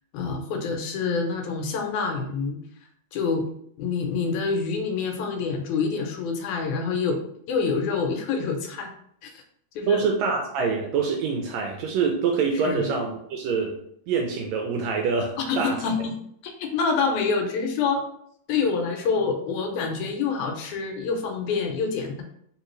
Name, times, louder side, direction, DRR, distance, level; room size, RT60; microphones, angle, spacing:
voice 1, 0.1-2.6 3.1-3.5 3.8-7.2 7.5-8.9 9.2-9.3 9.8-10.0 12.6-12.9 15.4-16.1 16.4-18.0 18.5-22.2, left 5 dB, 80° left, 3 dB, 2.1 m, -26 dB
voice 2, 9.9-13.8 14.1-15.8, right 5 dB, 80° right, 2 dB, 1.6 m, -25 dB
4.6 x 3.2 x 3.1 m, 0.70 s
omnidirectional pair, 3.5 m